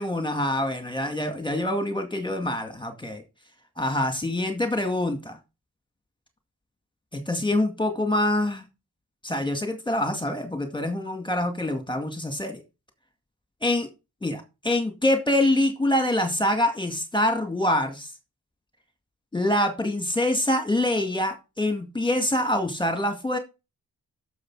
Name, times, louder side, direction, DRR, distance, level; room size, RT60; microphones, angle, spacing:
voice 1, 0.0-3.2 3.8-5.4 7.3-8.6 9.2-12.6 13.6-13.9 14.2-18.1 19.3-23.4, left 1 dB, 10° left, 5 dB, 2.1 m, -25 dB
9.8 x 6.9 x 4.8 m, 0.27 s
wide cardioid pair, 90°, 38 cm